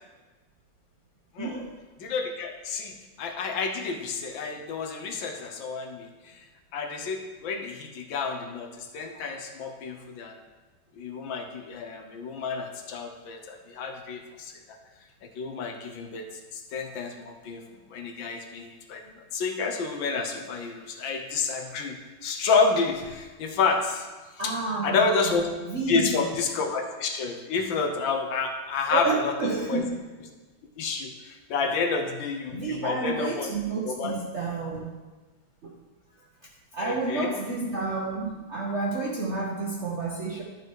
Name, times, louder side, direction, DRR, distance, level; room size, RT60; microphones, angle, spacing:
voice 1, 1.4-1.7 24.4-25.0 25.7-26.2 28.9-30.0 32.5-35.0 35.6-35.7 36.7-40.4, right 3 dB, 55° right, -2 dB, 0.8 m, -30 dB
voice 2, 2.0-6.4 6.7-10.4 10.9-14.8 15.3-16.2 16.5-17.6 17.9-19.0 19.3-24.1 24.4-24.5 24.8-25.5 25.9-29.8 30.8-33.5 33.9-34.1 36.8-37.3, left 4 dB, 70° left, 3 dB, 1.5 m, -29 dB
11.5 x 4.8 x 4.6 m, 1.3 s
omnidirectional pair, 2.3 m